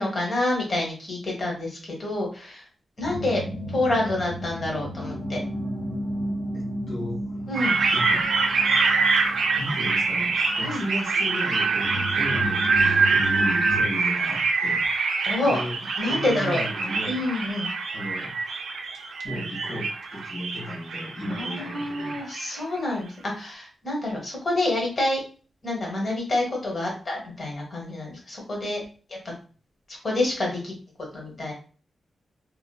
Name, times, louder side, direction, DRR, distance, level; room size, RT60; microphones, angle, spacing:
voice 1, 0.0-2.6 3.0-3.4 3.7-5.4 7.5-7.8 10.6-10.8 15.3-15.6 16.0-16.6 17.0-17.7 21.3-25.2 25.6-28.8 29.1-29.2 29.9-30.7 31.1-31.5, left 2 dB, 45° left, -1 dB, 1.2 m, -27 dB
sound 1, 3.0-13.8, equal, 15° left, 0.8 m, -34 dB
voice 2, 6.5-7.5 7.9-8.3 9.6-14.8 15.4-15.7 16.1-17.2 17.9-18.3 19.2-22.2, equal, 70° left, -3 dB, 1.5 m, -34 dB
sound 2, 7.5-22.6, right 4 dB, 80° right, 0.5 m, -25 dB
2.9 x 2.4 x 2.2 m, 0.39 s
wide cardioid pair, 120°, 0 cm